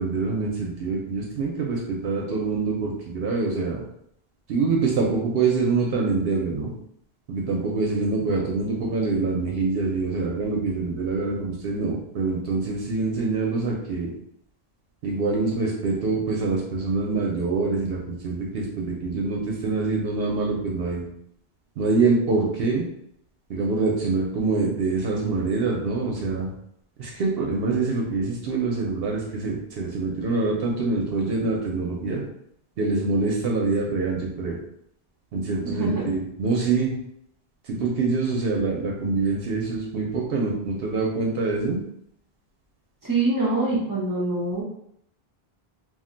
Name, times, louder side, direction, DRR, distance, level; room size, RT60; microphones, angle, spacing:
voice 1, 0.0-3.8 4.5-6.7 7.3-14.1 15.0-21.0 21.8-22.8 23.5-26.5 27.0-32.2 32.8-34.6 35.3-36.9 37.6-41.8, right 3 dB, 70° right, -1 dB, 0.8 m, -25 dB
voice 2, 35.6-36.1 43.0-44.6, right 2 dB, 20° right, -5 dB, 0.7 m, -25 dB
2.4 x 2.1 x 3.7 m, 0.71 s
omnidirectional pair, 1.0 m